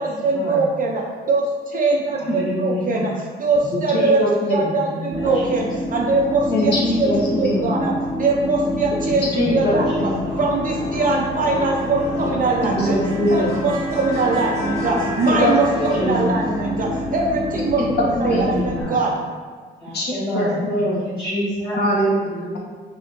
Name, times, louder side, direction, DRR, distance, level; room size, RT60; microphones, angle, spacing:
voice 1, 0.0-7.1 7.4-10.0 10.4-13.0 13.3-19.1, right 3 dB, 45° right, -1 dB, 0.5 m, -22 dB
voice 2, 2.2-2.9 4.8-5.4 7.6-7.8 9.3-9.6 10.2-10.3 12.3-12.6 16.0-16.4 18.3-19.0 19.8-20.5 21.0-21.8 22.2-22.6, equal, 20° left, -12 dB, 1.4 m, -28 dB
voice 3, 2.7-3.0 3.7-4.7 6.5-7.7 9.3-10.2 12.8-13.6 15.3-16.0 18.2-18.5 19.9-20.0 20.3-21.0 21.8-22.1, left 1 dB, 55° left, -3 dB, 1.0 m, -22 dB
sound 1, 5.1-18.8, left 1 dB, 15° right, 1.0 m, -27 dB
4.9 x 2.7 x 2.5 m, 1.5 s
cardioid pair, 90°, 20 cm